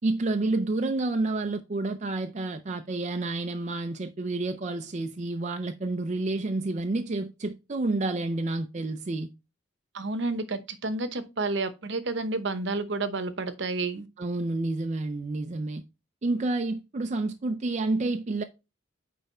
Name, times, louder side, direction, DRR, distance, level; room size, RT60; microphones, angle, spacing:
voice 1, 0.0-9.3 14.2-15.8 16.2-18.4, right 2 dB, 35° right, 0.4 m, -29 dB
voice 2, 9.9-14.1, right 3 dB, 60° right, 0.8 m, -30 dB
8.9 x 3.4 x 4.2 m
head